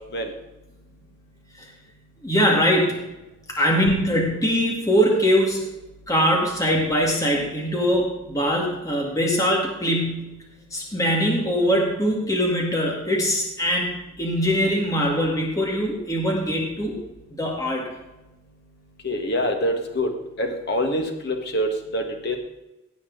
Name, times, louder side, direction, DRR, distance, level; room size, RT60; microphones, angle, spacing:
voice 1, 2.2-3.0 3.6-5.6 6.1-10.3 10.7-17.0 17.4-17.9, equal, 15° left, -1 dB, 2.1 m, -22 dB
voice 2, 19.0-20.1 20.4-21.7 21.9-22.4, equal, 50° left, 4 dB, 1.8 m, -25 dB
16.5 x 8.5 x 4.0 m, 0.99 s
head